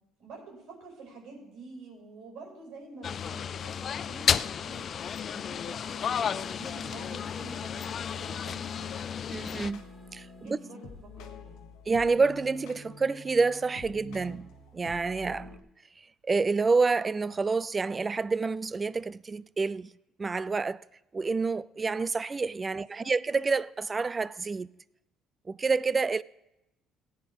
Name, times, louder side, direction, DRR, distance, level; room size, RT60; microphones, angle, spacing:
voice 1, 0.2-5.0 5.3-9.1 10.4-11.7 22.7-23.1, right 3 dB, 70° right, 5.4 m, -48 dB
sound 1, 3.0-9.7, left 8 dB, 50° left, 0.4 m, -32 dB
sound 2, 4.3-11.2, equal, 5° right, 2.2 m, -56 dB
voice 2, 9.3-9.8 10.1-10.6 11.9-15.6 16.0-19.9 20.2-20.8 21.1-24.7 25.5-26.2, right 4 dB, 30° right, 0.4 m, -28 dB
sound 3, 9.6-15.6, left 3 dB, 80° left, 1.3 m, -47 dB
17.0 x 8.7 x 3.6 m
supercardioid pair, 80°, 0 cm